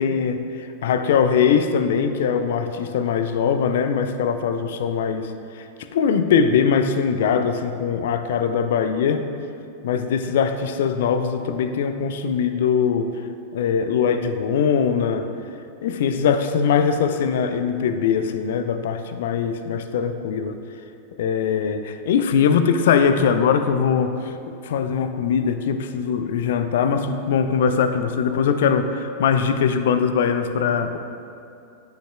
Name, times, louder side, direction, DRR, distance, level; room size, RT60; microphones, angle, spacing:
voice 1, 0.0-9.3 9.8-13.1 13.5-15.3 15.8-20.6 21.2-24.3 24.6-31.0, left 6 dB, 55° left, 9 dB, 0.4 m, -21 dB
9.8 x 5.8 x 2.2 m, 2.6 s
figure-of-eight pair, 90°, 0 cm